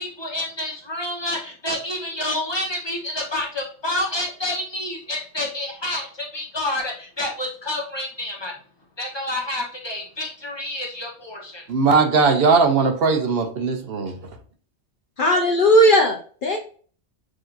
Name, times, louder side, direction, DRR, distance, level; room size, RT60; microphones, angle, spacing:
voice 1, 0.0-8.5 9.0-11.6, left 1 dB, 25° left, -1 dB, 0.9 m, -28 dB
voice 2, 11.7-14.3, right 4 dB, 60° right, 5 dB, 0.8 m, -19 dB
voice 3, 15.2-16.6, equal, 55° left, 3 dB, 0.6 m, -17 dB
6.3 x 2.7 x 2.4 m, 0.43 s
omnidirectional pair, 1.2 m